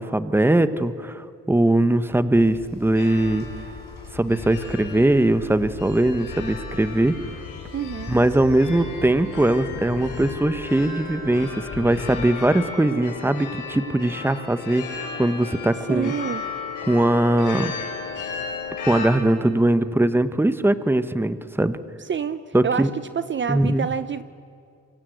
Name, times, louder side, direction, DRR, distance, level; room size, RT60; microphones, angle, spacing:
voice 1, 0.0-3.5 4.1-7.1 8.1-16.1 16.9-17.7 18.9-21.8 22.5-22.9 23.5-23.9, right 1 dB, 5° right, 12 dB, 1.3 m, -21 dB
Train, 2.3-12.3, left 6 dB, 65° left, 5.6 m, -39 dB
sound 1, 2.9-19.1, left 5 dB, 85° left, 7.3 m, -35 dB
voice 2, 7.7-8.1 15.9-16.4 22.1-22.9 23.1-24.2, right 7 dB, 40° right, 13 dB, 0.8 m, -27 dB
27.5 x 24.5 x 8.1 m, 2.4 s
cardioid pair, 90°, 30 cm